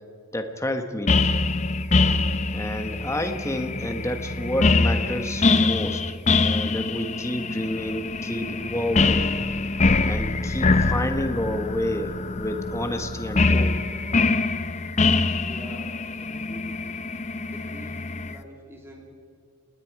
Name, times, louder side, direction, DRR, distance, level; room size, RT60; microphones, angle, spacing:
voice 1, 0.3-1.3 2.5-6.0 6.4-9.3 10.1-13.7, left 1 dB, 15° left, 6 dB, 1.3 m, -29 dB
sound 1, 1.1-18.3, left 3 dB, 30° left, 0.7 m, -24 dB
voice 2, 15.2-16.8 17.4-19.1, equal, 10° right, 0 dB, 3.0 m, -46 dB
29.5 x 20.0 x 4.7 m, 2.3 s
head